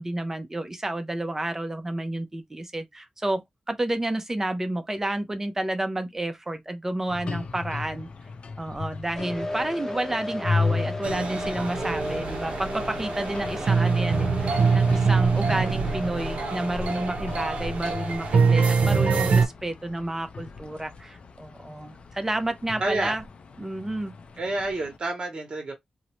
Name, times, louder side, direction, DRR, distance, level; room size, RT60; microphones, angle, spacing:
voice 1, 0.0-8.1 8.6-23.2 23.6-24.1, right 1 dB, 20° right, 0.5 m, -30 dB
sound 1, 7.1-25.0, left 4 dB, 60° left, 0.4 m, -36 dB
sound 2, 9.1-19.2, left 1 dB, 20° left, 0.8 m, -36 dB
sound 3, 11.0-19.5, right 5 dB, 85° right, 0.5 m, -24 dB
voice 2, 22.8-23.2 24.4-25.7, right 2 dB, 45° right, 1.0 m, -29 dB
2.6 x 2.1 x 3.0 m
wide cardioid pair, 95°, 2 cm